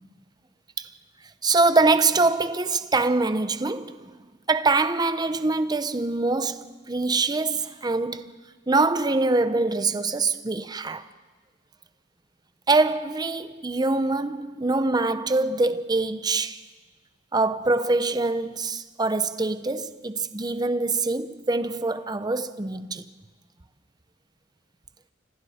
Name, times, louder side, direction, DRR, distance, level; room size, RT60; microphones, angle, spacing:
voice 1, 1.4-4.1 4.5-8.4 8.7-11.0 12.7-16.6 17.3-23.0, right 3 dB, 20° right, 0.7 m, -24 dB
29.5 x 26.0 x 4.3 m
head